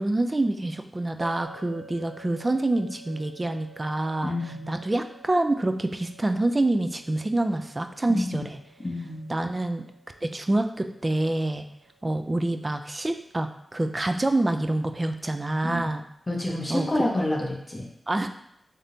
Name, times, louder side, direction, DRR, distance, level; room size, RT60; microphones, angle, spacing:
voice 1, 0.0-4.3 4.7-8.6 9.3-9.8 10.2-11.6 12.0-16.0 16.7-16.9 18.1-18.3, right 2 dB, 25° right, 7 dB, 0.3 m, -26 dB
sound 1, 1.2-14.3, right 4 dB, 80° right, 0.5 m, -52 dB
voice 2, 4.2-4.7 8.1-8.5 8.8-9.3 15.6-15.9 16.3-17.9, left 1 dB, 30° left, -2 dB, 0.8 m, -28 dB
3.4 x 2.8 x 3.8 m, 0.74 s
wide cardioid pair, 90°, 0 cm